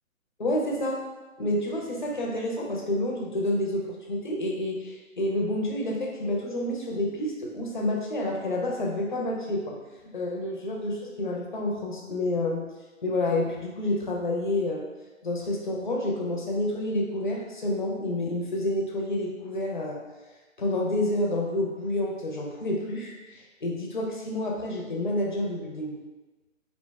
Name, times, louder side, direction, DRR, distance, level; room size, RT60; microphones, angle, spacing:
voice 1, 0.4-1.0 1.4-3.8 4.1-9.7 10.1-12.6 13.0-14.9 15.2-20.0 20.6-25.9, left 1 dB, 40° left, -1 dB, 0.4 m, -29 dB
2.8 x 2.1 x 3.2 m, 1.2 s
hypercardioid pair, 155°, 40 cm